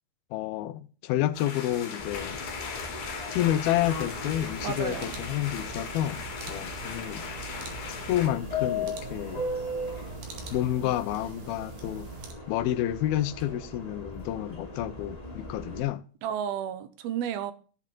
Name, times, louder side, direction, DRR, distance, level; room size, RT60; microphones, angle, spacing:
voice 1, 0.3-2.4 3.3-6.2 6.5-7.2 7.9-9.4 10.5-12.1 12.5-16.0, left 13 dB, 80° left, 2.6 m, -29 dB
sound 1, 1.3-8.3, left 5 dB, 55° left, 3.4 m, -38 dB
Subway metro underground, 2.0-15.8, left 2 dB, 10° left, 2.3 m, -38 dB
sound 2, 3.9-12.3, right 7 dB, 60° right, 3.6 m, -44 dB
voice 2, 4.6-5.2 10.8-11.0 16.2-17.5, right 9 dB, 80° right, 2.9 m, -32 dB
14.5 x 7.4 x 5.4 m
omnidirectional pair, 4.5 m